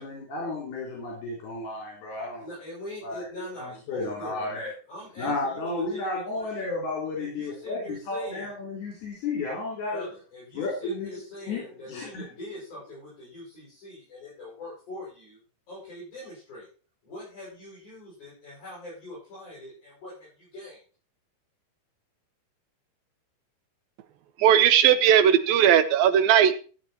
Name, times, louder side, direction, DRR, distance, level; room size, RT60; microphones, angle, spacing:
voice 1, 0.0-2.4 3.0-3.2 3.6-4.7 5.2-10.1 10.5-11.1 11.5-12.2, left 3 dB, 75° left, -3 dB, 5.7 m, -32 dB
voice 2, 2.1-6.7 7.2-8.6 9.9-15.4 15.7-16.7 17.0-20.8, left 1 dB, 50° left, -8 dB, 9.3 m, -43 dB
voice 3, 24.4-26.5, right 9 dB, 80° right, 12 dB, 2.4 m, -18 dB
15.0 x 8.1 x 4.4 m, 0.37 s
omnidirectional pair, 4.6 m